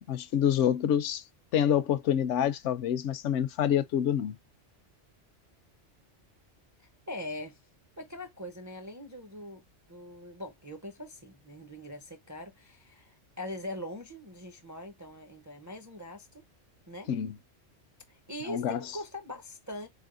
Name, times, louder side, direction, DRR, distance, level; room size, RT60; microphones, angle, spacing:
voice 1, 0.1-1.2 1.5-4.3 17.1-17.3 18.5-18.8, left 9 dB, 75° left, 0.9 m, -27 dB
voice 2, 7.1-7.6 8.0-9.6 9.9-16.4 16.9-17.1 18.1-19.9, left 1 dB, 25° right, 0.4 m, -42 dB
4.1 x 3.4 x 2.4 m
omnidirectional pair, 1.3 m